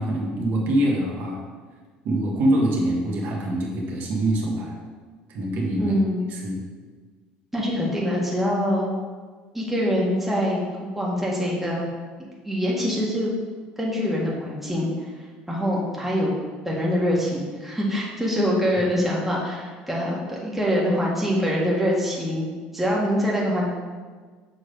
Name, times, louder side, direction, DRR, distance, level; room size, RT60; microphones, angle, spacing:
voice 1, 0.0-1.4 2.0-4.7 5.3-5.9 6.3-6.6, right 1 dB, 60° right, -2 dB, 1.4 m, -24 dB
voice 2, 5.8-6.2 7.5-9.0 9.5-11.9 12.4-13.3 13.8-15.1 15.5-16.3 16.6-23.6, equal, 5° right, -4 dB, 1.5 m, -24 dB
6.6 x 3.2 x 5.2 m, 1.5 s
supercardioid pair, 100°, 4 cm